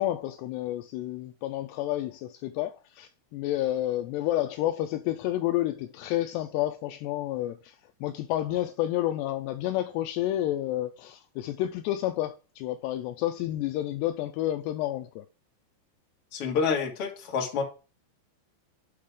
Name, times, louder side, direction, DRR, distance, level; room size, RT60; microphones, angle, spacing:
voice 1, 0.0-15.3, left 14 dB, 90° left, 2.4 m, -30 dB
voice 2, 16.3-17.6, left 5 dB, 45° left, 2.1 m, -28 dB
10.0 x 6.4 x 3.7 m
omnidirectional pair, 5.5 m